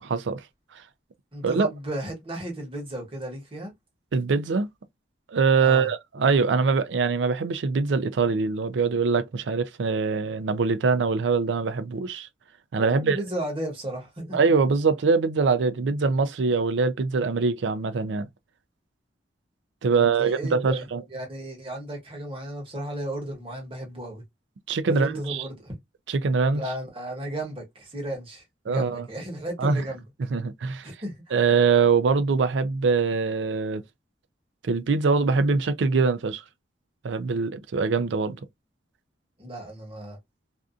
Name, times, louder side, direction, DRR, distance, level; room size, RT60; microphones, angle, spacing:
voice 1, 0.0-0.4 1.4-1.7 4.1-4.7 5.3-12.3 12.7-13.2 14.3-18.3 19.8-21.0 24.7-25.4 26.1-26.6 28.7-29.1 29.6-29.8 30.3-30.9 31.3-33.8 34.6-36.4 37.0-38.4, right 4 dB, 75° right, 0.4 m, -23 dB
voice 2, 1.3-3.7 5.6-5.9 12.7-14.4 19.9-20.8 21.1-24.2 24.9-25.8 26.5-30.0 31.0-31.4 39.4-40.2, right 1 dB, 30° right, 1.2 m, -34 dB
2.6 x 2.4 x 2.4 m
head